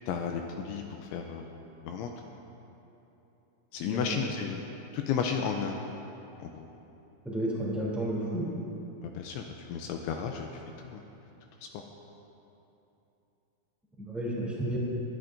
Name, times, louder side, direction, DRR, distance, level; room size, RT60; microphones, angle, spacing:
voice 1, 0.1-1.4 1.8-2.1 3.7-4.6 4.9-5.7 6.4-6.7 9.0-10.5 10.8-11.0, left 7 dB, 80° left, 3 dB, 2.8 m, -33 dB
voice 2, 3.9-4.2 7.2-8.4 14.0-14.8, right 1 dB, ahead, -7 dB, 1.0 m, -32 dB
22.0 x 13.5 x 2.7 m, 2.9 s
omnidirectional pair, 5.9 m